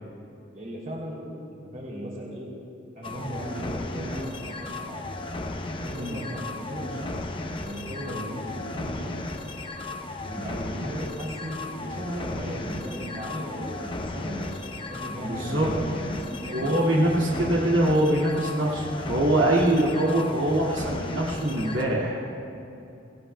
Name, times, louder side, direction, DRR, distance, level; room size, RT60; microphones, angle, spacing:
voice 1, 0.5-1.2 1.6-2.5 2.9-5.0 5.8-7.3 7.5-9.1 10.2-16.7 17.3-17.5, equal, 45° right, -3 dB, 3.0 m, -36 dB
sound 1, 3.0-21.8, left 2 dB, 25° left, 0.7 m, -35 dB
voice 2, 15.2-15.7 16.5-22.2, right 1 dB, 85° right, -5 dB, 2.2 m, -23 dB
20.0 x 16.5 x 2.3 m, 2.8 s
head